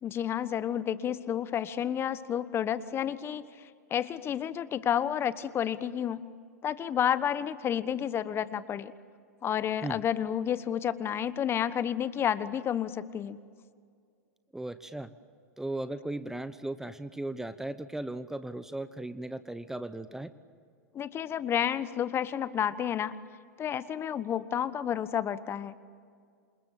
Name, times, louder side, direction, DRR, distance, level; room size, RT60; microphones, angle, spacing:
voice 1, 0.0-3.5 3.9-6.2 6.6-8.9 9.4-13.4 20.9-23.1 23.6-25.8, left 9 dB, 30° left, 15 dB, 1.2 m, -30 dB
voice 2, 14.5-15.1 15.6-20.3, right 1 dB, 5° right, 12 dB, 1.0 m, -37 dB
28.0 x 28.0 x 7.6 m, 2.1 s
hypercardioid pair, 105°, 9 cm